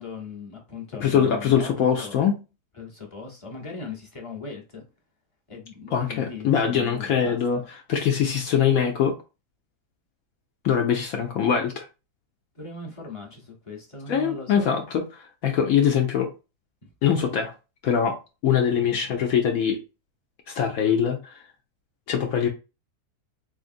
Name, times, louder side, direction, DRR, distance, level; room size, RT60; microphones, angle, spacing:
voice 1, 0.0-2.2 2.8-4.8 5.5-7.7 12.5-14.8 16.8-16.9, left 4 dB, 25° left, 0.7 m, -39 dB
voice 2, 1.0-2.4 5.9-9.1 10.6-11.9 14.1-16.3 17.0-17.5 17.8-18.2 18.4-19.8 20.5-21.4 22.1-22.5, left 8 dB, 70° left, 0.9 m, -23 dB
3.7 x 3.5 x 2.5 m
omnidirectional pair, 1.7 m